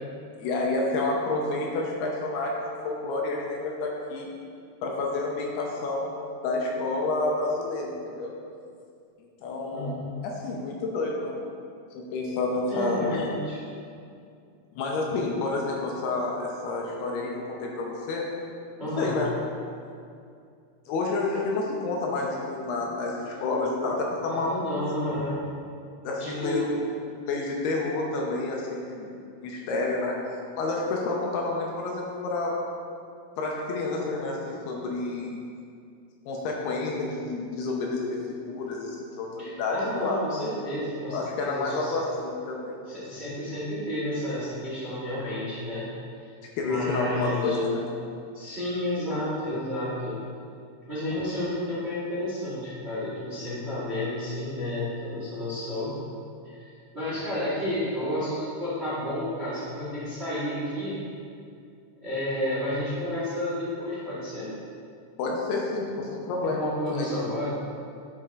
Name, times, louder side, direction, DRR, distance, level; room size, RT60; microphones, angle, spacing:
voice 1, 0.4-4.3 4.8-6.2 6.4-8.3 9.4-11.3 11.9-13.3 14.8-18.3 19.0-19.3 20.9-24.7 26.0-26.7 27.3-30.2 30.6-32.5 33.4-35.4 36.3-38.2 38.4-40.2 41.1-42.8 46.6-47.8 65.2-67.1, left 3 dB, 80° left, -1 dB, 2.7 m, -29 dB
voice 2, 9.6-10.1 12.7-13.6 18.8-19.1 24.3-25.4 26.2-26.6 39.4-42.0 42.9-45.9 46.2-47.6 48.3-50.2 50.9-55.9 56.4-61.0 62.0-64.5 66.4-67.6, left 1 dB, 55° right, -10 dB, 0.6 m, -31 dB
10.0 x 5.3 x 3.7 m, 2.4 s
omnidirectional pair, 4.8 m